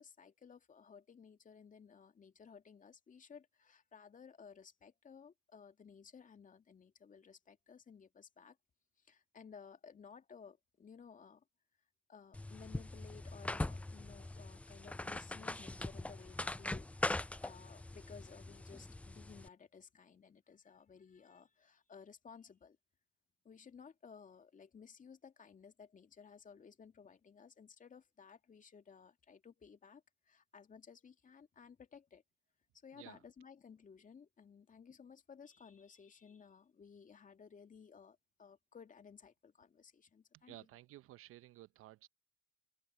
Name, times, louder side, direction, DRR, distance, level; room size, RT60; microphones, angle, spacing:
voice 1, 0.0-8.6 9.0-11.4 12.1-22.8 23.4-32.2 32.7-40.6, left 6 dB, 25° left, 2.5 m, -57 dB
sound 1, 12.3-19.5, left 2 dB, 5° left, 0.5 m, -42 dB
voice 2, 40.3-42.1, right 15 dB, 40° right, 0.9 m, -55 dB
open air
hypercardioid pair, 80°, 34 cm